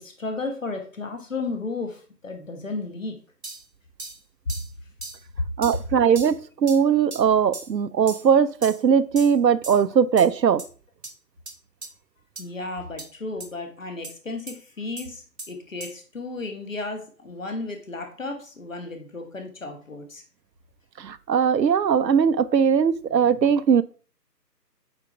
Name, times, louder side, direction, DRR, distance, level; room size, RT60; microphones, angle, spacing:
voice 1, 0.0-3.2 12.4-20.2, left 3 dB, 50° left, 1.5 m, -34 dB
sound 1, 3.4-3.6 4.0-4.2 4.5-4.7 5.0-5.2 5.6-5.8 6.2-6.4 6.7-6.8 7.1-7.2 7.5-7.7 8.1-8.3 8.6-8.8 9.2-9.4 9.6-9.8 10.2-10.3 10.6-10.7 11.0-11.1 11.5-11.6 11.8-11.9 12.4-12.5 13.0-13.1 13.4-13.5 14.0-14.1 14.5-14.6 15.0-15.1 15.4-15.5 15.8-15.9, right 3 dB, 40° right, 0.7 m, -38 dB
voice 2, 5.6-10.6 21.0-23.8, right 7 dB, 80° right, 0.6 m, -20 dB
8.0 x 4.3 x 3.3 m
figure-of-eight pair, 155°, 50 cm